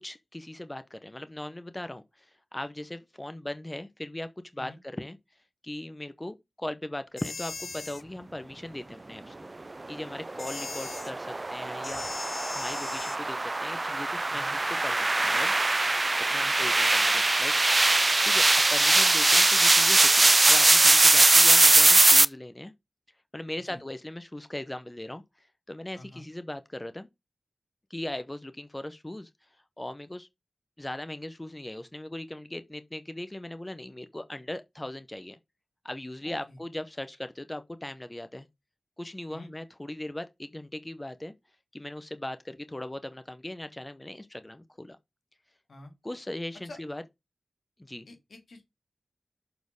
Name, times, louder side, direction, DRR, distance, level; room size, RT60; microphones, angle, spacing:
voice 1, 0.0-5.2 5.6-9.3 9.9-12.1 12.5-15.5 16.3-17.6 17.9-18.5 18.7-22.7 23.3-27.1 27.9-29.3 29.8-30.3 30.8-35.4 35.8-38.5 39.0-41.3 41.7-45.0 46.0-47.0 47.8-48.1, left 1 dB, 20° left, 0.7 m, -39 dB
sound 1, 7.2-8.0 10.4-11.1 11.8-13.2, left 3 dB, 60° left, 0.6 m, -38 dB
sound 2, 10.2-22.3, right 2 dB, 35° right, 0.3 m, -21 dB
voice 2, 16.4-16.7 23.6-23.8 25.9-26.3 36.2-36.6 39.3-39.5 45.7-45.9 46.6-46.8 48.1-48.7, left 2 dB, 80° left, 2.3 m, -48 dB
6.7 x 4.2 x 5.2 m
wide cardioid pair, 90°, 0 cm